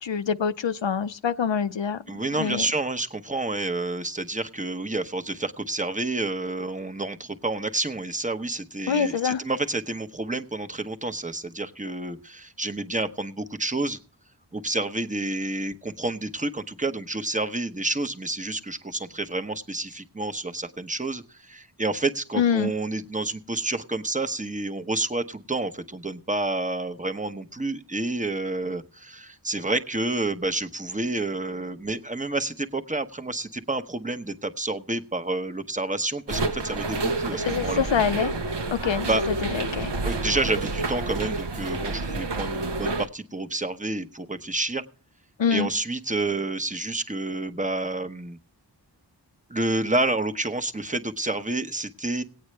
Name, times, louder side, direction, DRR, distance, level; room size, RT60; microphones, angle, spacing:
voice 1, 0.0-2.0 2.4-2.7 8.9-9.4 22.3-22.7 37.5-38.3 38.7-39.1 39.5-39.9 45.4-45.7, left 7 dB, 90° left, 0.6 m, -25 dB
voice 2, 2.1-14.0 14.5-37.9 39.1-39.2 40.0-44.8 45.5-48.4 49.5-52.2, right 2 dB, 20° right, 0.9 m, -29 dB
sound 1, 36.3-43.1, right 2 dB, 70° right, 0.9 m, -29 dB
18.5 x 8.7 x 3.3 m
wide cardioid pair, 40°, 43 cm